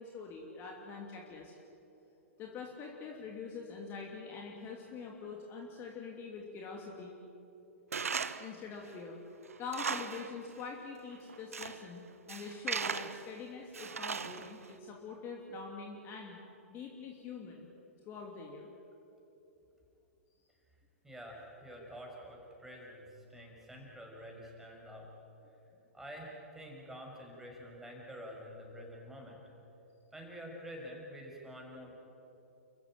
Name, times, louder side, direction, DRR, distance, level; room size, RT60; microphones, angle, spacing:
voice 1, 0.0-1.5 2.4-7.2 8.4-9.2 9.6-16.4 16.7-17.7 18.0-18.7, left 5 dB, 30° left, 0 dB, 2.9 m, -44 dB
Tools, 7.9-8.5 8.9-9.0 9.5-10.3 10.6-10.7 11.3-11.8 12.3-13.3 13.7-14.6, right 5 dB, 80° right, 1.0 m, -37 dB
voice 2, 21.0-25.1 25.9-29.4 30.1-32.0, equal, 5° right, -1 dB, 6.3 m, -48 dB
30.0 x 15.0 x 9.0 m, 2.9 s
figure-of-eight pair, 115°, 8 cm